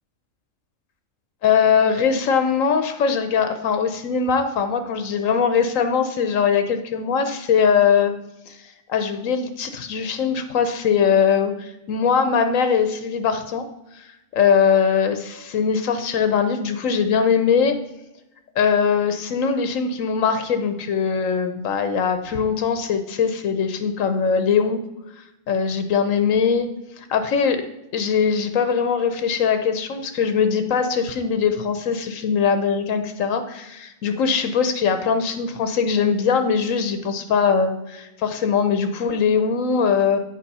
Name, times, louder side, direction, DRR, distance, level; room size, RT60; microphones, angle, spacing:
voice 1, 1.4-8.1 8.5-8.6 8.9-13.6 14.3-17.8 18.6-24.8 25.5-26.7 27.0-27.6 27.9-40.2, left 6 dB, 85° left, 8 dB, 1.1 m, -21 dB
8.5 x 4.9 x 5.4 m, 0.93 s
omnidirectional pair, 1.3 m